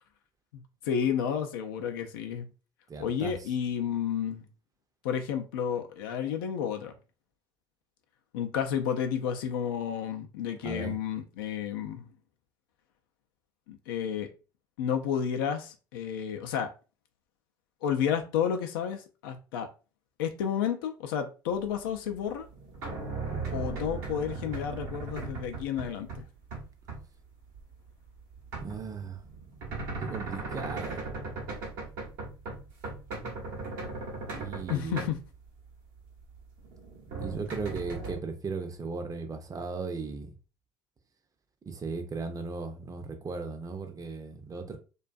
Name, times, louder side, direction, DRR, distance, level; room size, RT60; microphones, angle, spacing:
voice 1, 0.5-2.5 3.0-4.4 5.0-6.9 8.3-12.1 13.7-14.3 14.8-16.7 17.8-19.7 20.2-22.5 23.5-26.3 34.7-35.2, left 8 dB, 80° left, 0.4 m, -31 dB
voice 2, 2.9-3.4 10.6-11.0 23.3-23.7 28.6-29.2 30.0-31.0 33.2-33.3 34.4-35.1 37.2-40.3 41.7-44.8, right 4 dB, 30° right, 0.5 m, -37 dB
sound 1, 22.2-26.2 26.5-27.1 27.5-35.5 36.1-38.2, right 3 dB, 75° right, 0.8 m, -38 dB
2.5 x 2.3 x 2.3 m
hypercardioid pair, 55°, 11 cm